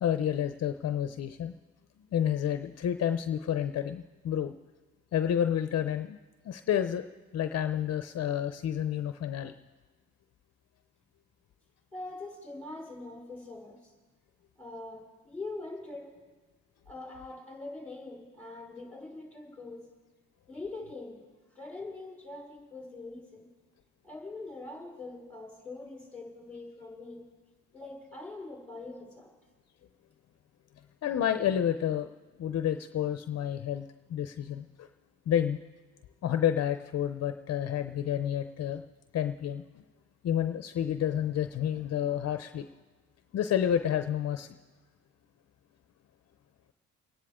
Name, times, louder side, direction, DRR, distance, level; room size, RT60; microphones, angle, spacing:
voice 1, 0.0-1.5 2.1-4.5 5.1-6.2 6.4-7.0 7.3-9.5 31.0-32.1 32.4-34.9 35.3-35.6 36.2-38.8 39.1-39.8 40.2-42.7 43.3-44.6, left 10 dB, 55° left, 9 dB, 0.7 m, -30 dB
voice 2, 11.9-13.8 14.6-16.1 16.9-19.9 20.5-21.2 21.5-23.5 24.0-27.2 27.7-29.3, left 2 dB, 5° left, -2 dB, 5.3 m, -43 dB
30.0 x 10.0 x 3.7 m, 1.3 s
cardioid pair, 90°, 30 cm